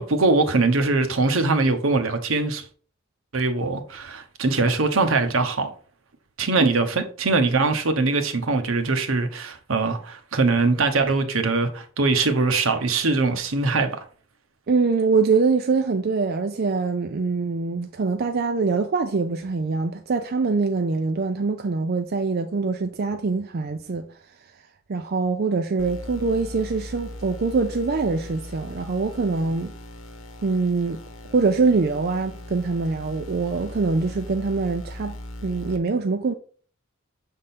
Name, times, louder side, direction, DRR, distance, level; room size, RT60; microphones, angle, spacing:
voice 1, 0.0-2.6 3.3-5.7 6.4-14.0, right 3 dB, 75° right, 0.9 m, -22 dB
voice 2, 14.7-24.1 24.9-29.7 30.4-31.0 31.3-35.2 35.4-36.3, right 4 dB, 50° right, 0.5 m, -24 dB
sound 1, 25.8-35.8, left 1 dB, 80° left, 1.0 m, -39 dB
6.6 x 3.7 x 4.2 m
head